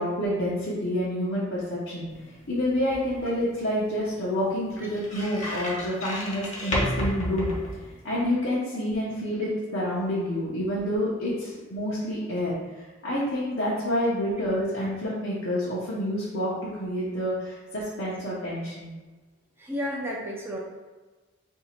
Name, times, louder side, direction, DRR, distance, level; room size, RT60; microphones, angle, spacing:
voice 1, 0.0-7.5 8.0-12.5 13.0-18.9, equal, 70° left, -8 dB, 0.8 m, -28 dB
sound 1, 2.1-8.3, equal, 35° left, 0.7 m, -34 dB
voice 2, 19.6-20.6, equal, 10° right, -3 dB, 0.4 m, -32 dB
2.9 x 2.7 x 4.3 m, 1.2 s
head